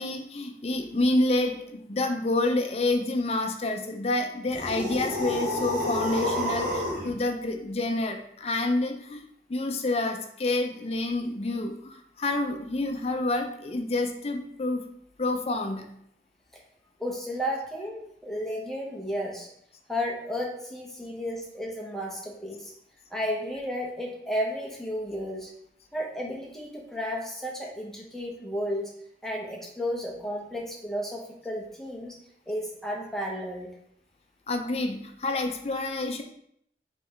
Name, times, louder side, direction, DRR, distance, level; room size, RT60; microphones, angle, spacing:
voice 1, 0.0-9.2 9.5-14.8 15.2-15.9 34.5-36.2, left 2 dB, 35° left, 4 dB, 0.5 m, -28 dB
sound 1, 4.5-7.1, left 1 dB, 75° right, 1.7 m, -29 dB
voice 2, 17.0-19.5 19.9-22.7 23.1-25.5 25.9-28.9 29.2-32.2 32.5-33.7, equal, ahead, -2 dB, 0.7 m, -33 dB
3.5 x 3.1 x 4.5 m, 0.71 s
head